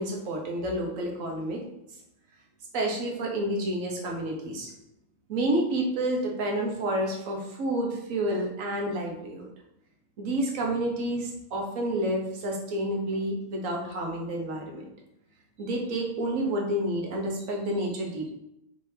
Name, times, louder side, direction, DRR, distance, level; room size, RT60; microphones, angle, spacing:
voice 1, 0.0-1.6 2.7-4.7 5.3-9.5 10.2-14.9 15.6-18.3, right 1 dB, 80° right, 0 dB, 1.3 m, -29 dB
4.3 x 3.3 x 3.3 m, 0.82 s
omnidirectional pair, 1.4 m